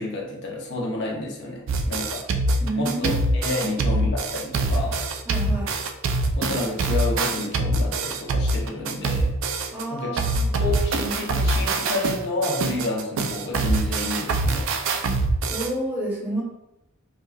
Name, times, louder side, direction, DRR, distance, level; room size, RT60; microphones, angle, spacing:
voice 1, 0.0-2.2 2.8-5.0 6.3-9.3 9.9-10.2 10.6-14.7, left 2 dB, 60° left, -2 dB, 0.8 m, -30 dB
sound 1, 1.7-9.8 10.2-15.7, right 2 dB, 65° right, 0.3 m, -24 dB
voice 2, 2.6-3.2 3.6-3.7 5.3-5.8 9.7-10.5 15.5-16.4, right 1 dB, 10° right, -5 dB, 0.8 m, -29 dB
4.8 x 2.2 x 2.3 m, 0.87 s
head